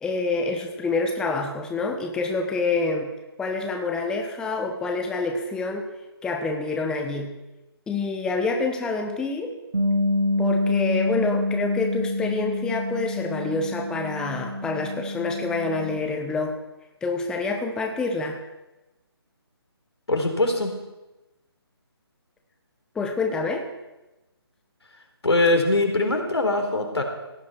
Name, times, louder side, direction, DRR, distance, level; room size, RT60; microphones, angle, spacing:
voice 1, 0.0-3.1 3.4-5.9 6.2-7.3 7.9-9.5 10.4-16.6 17.0-18.4 22.9-23.6, left 3 dB, 5° left, 3 dB, 1.1 m, -27 dB
Bass guitar, 9.7-16.0, left 1 dB, 85° right, 4.0 m, -27 dB
voice 2, 20.1-20.7 25.2-27.0, left 2 dB, 80° left, 3 dB, 4.0 m, -22 dB
16.5 x 9.6 x 5.9 m, 1.0 s
figure-of-eight pair, 150°, 13 cm